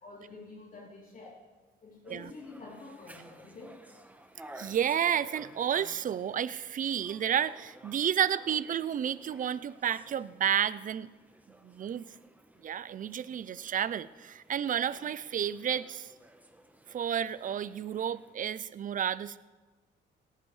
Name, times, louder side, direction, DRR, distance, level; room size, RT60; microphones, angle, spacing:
voice 1, 0.0-1.4 1.8-3.8, left 3 dB, 40° left, -6 dB, 3.5 m, -48 dB
sound 1, 2.0-18.3, right 1 dB, 10° right, 1.1 m, -55 dB
voice 2, 4.6-11.1 11.6-12.0 12.6-16.1 16.9-19.4, right 9 dB, 40° right, 18 dB, 0.5 m, -31 dB
18.0 x 15.5 x 3.3 m, 1.3 s
cardioid pair, 90°, 20 cm